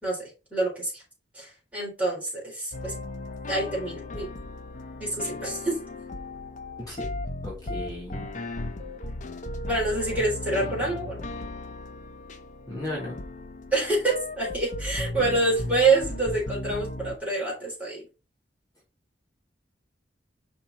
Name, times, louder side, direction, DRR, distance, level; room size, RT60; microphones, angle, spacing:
voice 1, 0.0-1.0 1.3-2.9 3.5-4.3 5.0-5.8 9.7-11.2 13.7-18.1, right 2 dB, 10° right, -5 dB, 3.9 m, -27 dB
sound 1, 2.7-17.2, left 2 dB, 45° left, 0.7 m, -36 dB
voice 2, 7.4-8.2 10.8-10.9 12.7-13.2, left 1 dB, 20° left, -7 dB, 2.8 m, -35 dB
5.7 x 4.4 x 4.1 m, 0.30 s
head